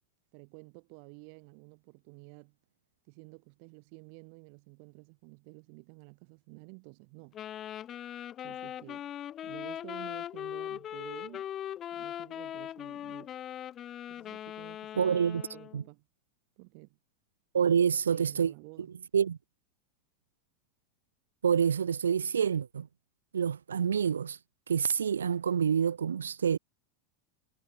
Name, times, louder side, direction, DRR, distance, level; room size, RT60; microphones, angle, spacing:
voice 1, 0.3-2.6 3.1-7.4 8.4-9.1 9.4-11.5 11.9-13.3 14.1-15.2 15.5-16.1 16.6-17.0 17.6-17.8 18.1-18.9, right 40 dB or more, 55° right, 2.3 m, -51 dB
Wind instrument woodwind instrument, 7.3-15.8, left 11 dB, 35° left, 1.8 m, -40 dB
voice 2, 15.0-15.4 15.7-15.8 17.5-18.5 19.1-19.4 21.4-22.9 23.3-24.4 24.7-26.6, right 7 dB, 75° right, 0.6 m, -27 dB
figure-of-eight pair, 85°, 0 cm